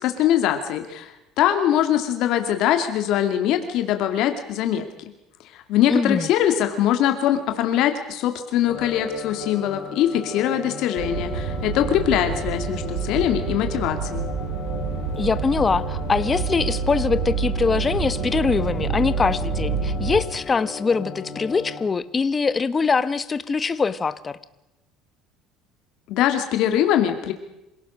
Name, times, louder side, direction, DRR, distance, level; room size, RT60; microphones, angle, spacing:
voice 1, 0.0-4.9 5.5-14.3 26.1-27.3, left 11 dB, 60° left, 7 dB, 2.5 m, -22 dB
voice 2, 5.9-6.3 15.2-24.4, left 4 dB, 20° left, 14 dB, 1.1 m, -23 dB
sound 1, 8.7-21.9, left 6 dB, 45° left, 3.4 m, -36 dB
sound 2, 11.0-20.2, right 6 dB, 80° right, 5.9 m, -28 dB
26.5 x 17.5 x 6.5 m, 0.90 s
cardioid pair, 140°, 0 cm